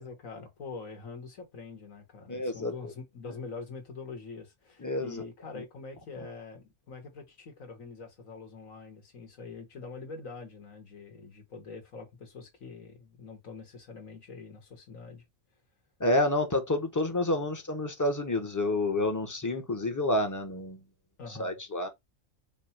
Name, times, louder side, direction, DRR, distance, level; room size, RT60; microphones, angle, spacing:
voice 1, 0.0-15.2 21.2-21.6, left 4 dB, 90° left, 1.8 m, -44 dB
voice 2, 2.3-2.9 4.8-5.2 5.5-5.6 16.0-20.8 21.4-21.9, left 1 dB, 15° left, 0.7 m, -29 dB
5.2 x 2.2 x 4.2 m
omnidirectional pair, 1.3 m